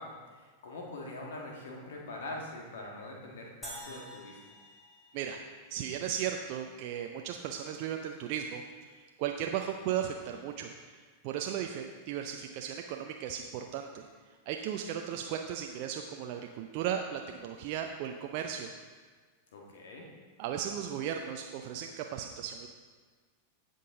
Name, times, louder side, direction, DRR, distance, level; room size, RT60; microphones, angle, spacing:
voice 1, 0.0-4.6 19.5-20.1, left 2 dB, 60° left, 0 dB, 1.9 m, -43 dB
sound 1, 3.6-6.1, right 1 dB, 10° left, 2.4 m, -48 dB
voice 2, 5.7-14.1 14.5-18.7 20.4-22.7, right 9 dB, 45° right, 4 dB, 0.6 m, -36 dB
16.0 x 5.4 x 3.8 m, 1.5 s
figure-of-eight pair, 90°, 0 cm